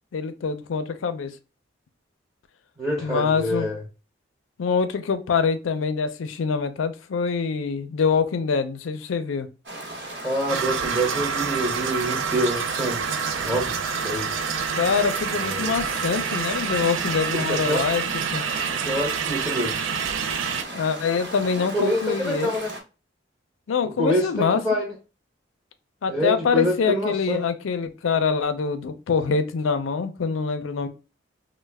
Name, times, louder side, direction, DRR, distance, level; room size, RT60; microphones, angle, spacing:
voice 1, 0.1-1.3 3.0-3.7 4.6-9.5 14.8-18.0 18.3-18.4 20.7-22.5 23.7-24.6 26.0-30.9, left 5 dB, 85° left, 0.4 m, -25 dB
voice 2, 2.8-3.8 10.2-14.5 15.3-15.7 17.4-17.8 18.8-19.9 21.7-22.7 24.0-24.9 26.1-27.4, equal, 15° right, 0.7 m, -26 dB
sound 1, 9.7-22.8, right 1 dB, 55° right, 0.9 m, -37 dB
sound 2, 10.5-20.6, right 6 dB, 80° right, 0.4 m, -27 dB
3.1 x 2.1 x 3.3 m
head